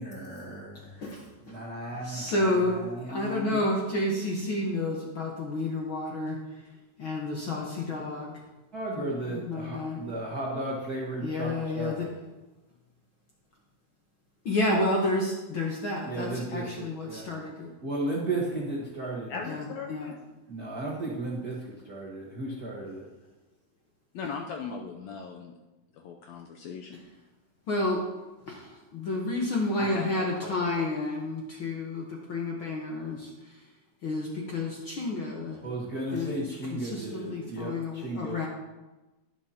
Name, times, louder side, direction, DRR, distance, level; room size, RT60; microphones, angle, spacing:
voice 1, 0.0-1.0 1.5-3.7 8.7-12.1 16.1-17.3 17.8-19.3 20.5-23.1 35.6-38.4, right 2 dB, 50° right, -5 dB, 1.1 m, -35 dB
voice 2, 2.0-2.8 3.0-6.4 7.0-8.3 8.9-10.1 11.2-12.1 14.4-17.7 19.4-20.1 27.7-28.0 28.5-33.6 34.0-35.6 36.1-36.4 36.8-38.5, left 2 dB, 60° left, -2 dB, 1.3 m, -30 dB
voice 3, 19.3-20.2 24.1-25.5 26.0-27.0 29.8-30.8, left 5 dB, 80° left, 2 dB, 1.6 m, -38 dB
11.0 x 10.5 x 2.8 m, 1.1 s
omnidirectional pair, 3.7 m